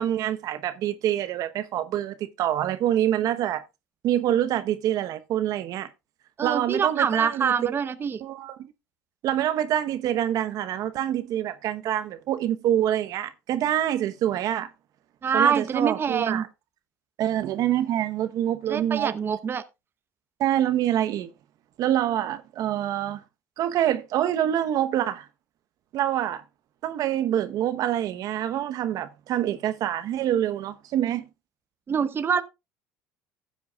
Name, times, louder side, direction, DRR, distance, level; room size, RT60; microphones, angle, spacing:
voice 1, 0.0-3.6 4.0-5.9 6.4-7.7 8.2-8.7 9.2-14.7 15.3-16.5 17.2-19.1 20.4-21.3 21.8-23.2 23.6-25.3 25.9-26.4 26.8-31.3, right 11 dB, 60° right, 0.9 m, -26 dB
voice 2, 6.4-8.2 15.2-16.4 18.7-19.6 31.9-32.4, right 6 dB, 30° right, 0.8 m, -25 dB
15.5 x 7.8 x 2.3 m
supercardioid pair, 90°, 7 cm